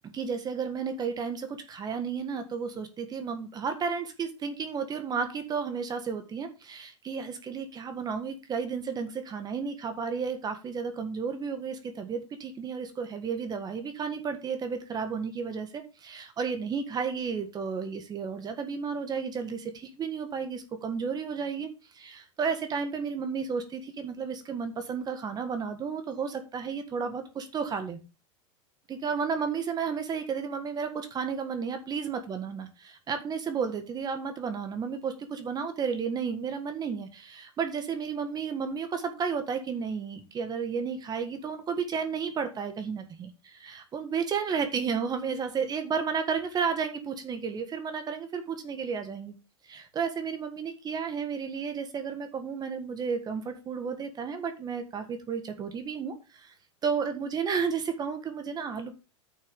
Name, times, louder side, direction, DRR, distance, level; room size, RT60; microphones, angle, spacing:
voice 1, 0.1-28.0 28.9-43.3 43.6-49.3 49.6-56.5 56.8-58.9, right 6 dB, 25° right, 7 dB, 1.5 m, -32 dB
9.9 x 6.4 x 3.6 m, 0.30 s
hypercardioid pair, 120°, 16 cm